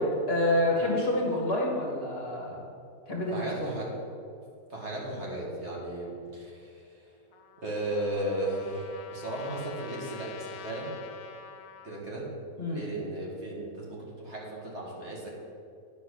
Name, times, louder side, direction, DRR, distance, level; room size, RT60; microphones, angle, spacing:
voice 1, 0.0-2.6 3.1-3.5 12.6-12.8, left 1 dB, 40° left, -2 dB, 1.5 m, -27 dB
voice 2, 3.3-3.9 4.7-7.0 7.6-10.9 11.8-12.3 12.7-15.4, right 1 dB, 45° right, -4 dB, 2.1 m, -35 dB
Trumpet, 7.3-12.0, left 6 dB, 70° left, 1.1 m, -47 dB
10.0 x 5.5 x 6.4 m, 2.4 s
omnidirectional pair, 1.7 m